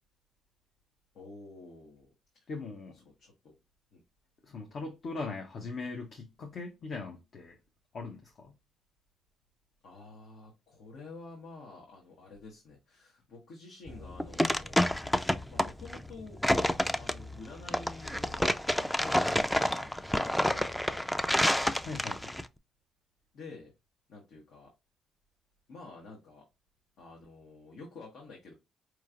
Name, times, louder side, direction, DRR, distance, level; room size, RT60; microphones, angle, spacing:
voice 1, 1.1-2.1 2.3-2.5 2.9-3.6 3.9-4.0 9.8-14.9 15.5-16.4 17.0-18.5 18.7-19.9 20.2-21.5 23.3-23.7 24.1-24.7 25.7-26.4 27.0-28.5, left 3 dB, 75° left, 1.2 m, -49 dB
voice 2, 2.5-3.0 4.4-7.6 7.9-8.5 21.8-22.3, left 3 dB, 55° left, 0.8 m, -40 dB
sound 1, 13.9-22.4, left 1 dB, 5° left, 0.3 m, -29 dB
4.6 x 3.1 x 2.5 m
cardioid pair, 90°, 0 cm